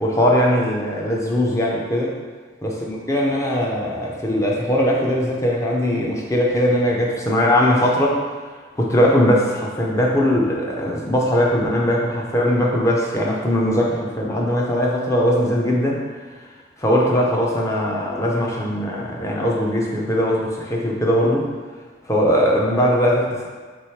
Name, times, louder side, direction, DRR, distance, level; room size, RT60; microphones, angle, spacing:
voice 1, 0.0-2.2 2.6-8.2 8.7-16.0 16.8-21.5 22.0-23.5, equal, 15° left, -3 dB, 0.5 m, -20 dB
3.1 x 3.1 x 4.4 m, 1.4 s
head